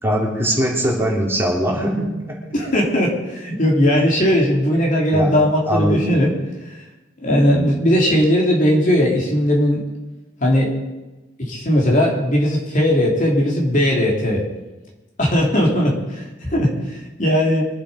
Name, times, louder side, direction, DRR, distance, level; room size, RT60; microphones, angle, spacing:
voice 1, 0.0-2.3 5.1-5.4 5.7-6.0, equal, 15° right, -3 dB, 3.4 m, -21 dB
voice 2, 2.5-6.3 6.7-6.8 7.2-9.8 10.4-10.8 11.4-14.4 15.2-17.7, equal, 45° left, -2 dB, 3.3 m, -18 dB
24.5 x 8.3 x 5.1 m, 1.1 s
head